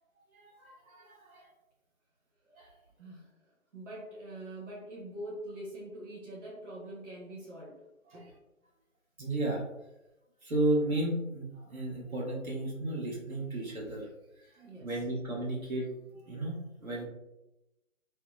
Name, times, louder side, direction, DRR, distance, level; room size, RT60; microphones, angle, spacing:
voice 1, 0.3-1.5 2.5-2.7 9.2-9.6 10.4-14.1 14.4-14.5 14.8-15.9 16.2-16.6 16.8-17.0, right 1 dB, 85° right, -4 dB, 1.1 m, -33 dB
voice 2, 3.0-3.4 3.7-7.8 8.1-8.3 14.6-15.0, right 1 dB, 60° right, -4 dB, 0.9 m, -44 dB
2.8 x 2.1 x 2.3 m, 0.93 s
figure-of-eight pair, 155°, 41 cm